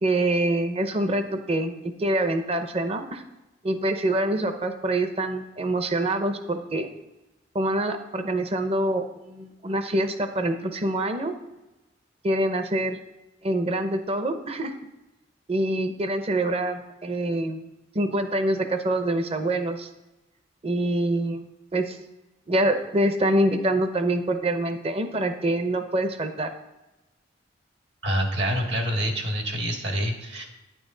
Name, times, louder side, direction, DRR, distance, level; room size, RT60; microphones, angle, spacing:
voice 1, 0.0-3.2 3.6-6.9 7.5-11.3 12.2-13.0 13.4-14.7 15.5-17.6 17.9-19.9 20.6-21.5 21.7-22.0 22.5-26.5, right 1 dB, 30° right, 7 dB, 0.7 m, -25 dB
voice 2, 28.0-30.4, equal, 65° right, 2 dB, 1.7 m, -26 dB
9.9 x 8.6 x 3.9 m, 1.0 s
head